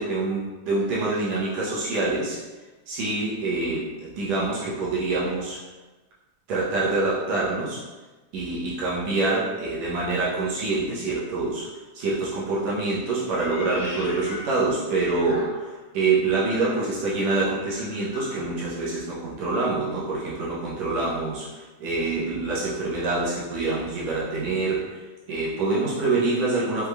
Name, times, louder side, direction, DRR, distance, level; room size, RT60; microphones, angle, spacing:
voice 1, 0.0-0.4 0.7-2.4 2.9-5.6 6.5-7.8 8.3-11.7 11.9-15.5 15.9-21.5 21.8-24.8 25.3-26.9, right 3 dB, 70° right, -7 dB, 1.7 m, -26 dB
Meow, 13.3-15.9 16.4-18.5, left 2 dB, 75° left, 2.5 m, -41 dB
6.0 x 3.5 x 2.2 m, 1.2 s
omnidirectional pair, 3.8 m